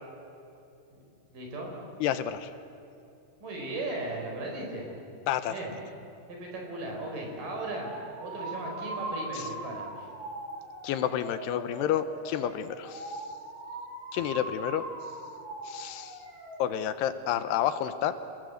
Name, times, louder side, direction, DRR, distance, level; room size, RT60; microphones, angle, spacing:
voice 1, 1.3-1.7 3.4-4.9 5.5-5.7 6.3-7.9 8.2-10.1 14.2-14.3, right 2 dB, 50° right, 0 dB, 6.0 m, -37 dB
voice 2, 2.0-2.5 5.3-5.5 9.4-9.5 10.8-13.2 14.1-14.8 15.7-16.2 16.6-18.2, left 10 dB, 80° left, 12 dB, 2.9 m, -30 dB
sound 1, 7.8-16.7, right 2 dB, 85° right, 6.3 m, -40 dB
27.5 x 20.5 x 7.9 m, 2.7 s
omnidirectional pair, 4.9 m